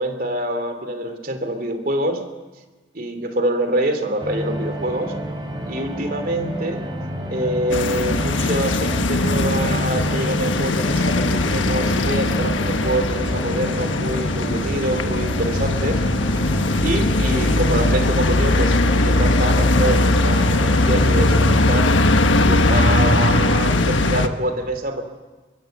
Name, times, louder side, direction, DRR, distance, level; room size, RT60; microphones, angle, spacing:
voice 1, 0.0-2.2 2.9-5.1 5.6-6.8 7.3-16.0 16.8-18.8 19.0-21.9 22.4-25.0, right 1 dB, 50° right, 7 dB, 2.9 m, -25 dB
sound 1, 4.2-21.7, equal, 25° right, 4.2 m, -30 dB
sound 2, 7.7-24.3, left 2 dB, 85° left, 1.4 m, -19 dB
24.5 x 22.0 x 8.0 m, 1.3 s
head